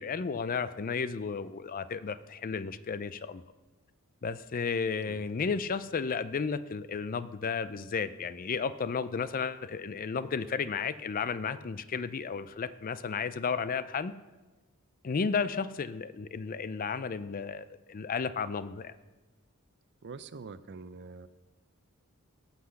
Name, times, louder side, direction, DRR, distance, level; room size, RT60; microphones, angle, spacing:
voice 1, 0.0-3.4 4.2-14.1 15.0-18.9, left 5 dB, 40° left, 14 dB, 0.4 m, -33 dB
voice 2, 20.0-21.3, right 4 dB, 50° right, 14 dB, 0.5 m, -45 dB
16.0 x 5.9 x 6.4 m, 1.2 s
head